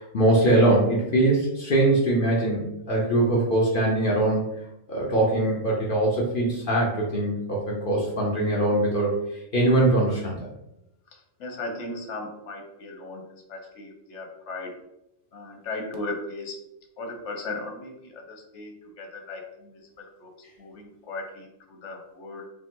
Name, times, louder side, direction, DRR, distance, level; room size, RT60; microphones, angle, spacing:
voice 1, 0.0-4.4 4.9-9.1 9.5-10.4, right 1 dB, 50° left, -3 dB, 1.0 m, -22 dB
voice 2, 11.1-13.2 13.5-14.7 15.3-16.6 17.0-20.3 20.6-22.5, left 2 dB, 80° left, 2 dB, 1.2 m, -37 dB
5.2 x 2.0 x 3.7 m, 0.85 s
omnidirectional pair, 1.2 m